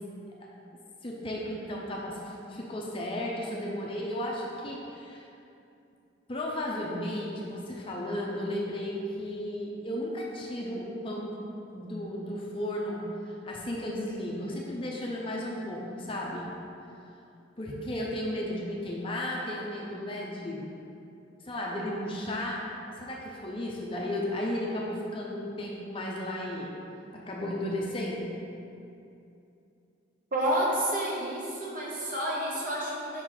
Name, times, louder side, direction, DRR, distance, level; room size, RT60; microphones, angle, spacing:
voice 1, 1.0-5.3 6.3-11.4 11.7-13.0 13.4-16.5 17.6-20.7 21.4-22.6 23.0-26.7 27.1-28.3, left 1 dB, 25° left, -2 dB, 0.5 m, -34 dB
voice 2, 30.3-33.2, right 1 dB, 45° right, -4 dB, 1.0 m, -29 dB
5.5 x 3.9 x 4.7 m, 2.7 s
head